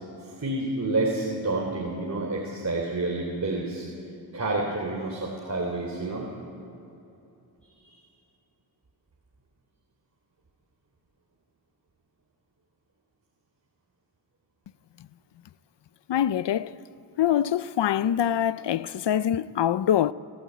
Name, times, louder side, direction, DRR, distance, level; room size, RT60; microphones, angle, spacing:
voice 1, 0.2-3.9 4.3-6.3 7.8-7.9, right 2 dB, 40° right, 3.4 m, -29 dB
voice 2, 16.1-16.7 17.2-20.1, left 10 dB, 75° left, 0.6 m, -24 dB
29.5 x 13.5 x 9.4 m
wide cardioid pair, 90°, 42 cm